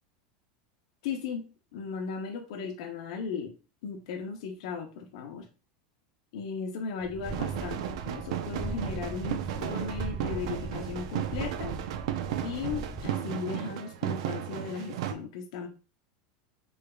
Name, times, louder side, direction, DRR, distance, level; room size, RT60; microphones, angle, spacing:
voice 1, 1.0-3.5 3.8-5.5 6.3-11.7 12.4-15.7, left 5 dB, 70° left, 3 dB, 0.6 m, -36 dB
sound 1, 7.0-13.0, right 2 dB, 15° right, 0.5 m, -39 dB
sound 2, 7.2-15.1, right 11 dB, 70° right, 0.4 m, -34 dB
3.4 x 3.2 x 2.2 m, 0.34 s
supercardioid pair, 150°, 3 cm